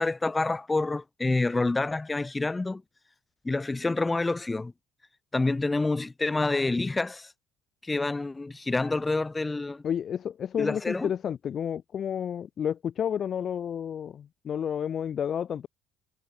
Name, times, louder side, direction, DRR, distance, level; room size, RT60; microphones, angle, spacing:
voice 1, 0.0-2.8 3.4-4.7 5.3-7.3 7.8-9.8 10.6-11.1, left 3 dB, 20° left, 1.8 m, -27 dB
voice 2, 9.8-15.7, left 8 dB, 50° left, 0.7 m, -31 dB
supercardioid pair, 75°, 0 cm